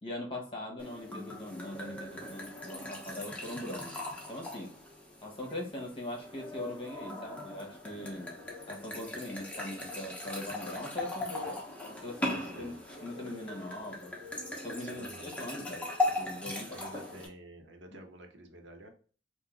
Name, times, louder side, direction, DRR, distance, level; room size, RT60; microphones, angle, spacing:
voice 1, 0.0-4.8 5.2-8.3 8.7-12.7 13.0-14.1 14.6-15.9 16.2-17.0, left 1 dB, 30° left, 0 dB, 1.3 m, -41 dB
sound 1, 0.8-17.3, left 2 dB, 10° left, 0.9 m, -39 dB
voice 2, 12.4-12.8 14.8-15.3 16.7-18.9, right 1 dB, 90° right, 4 dB, 0.9 m, -50 dB
3.7 x 2.7 x 3.8 m, 0.40 s
head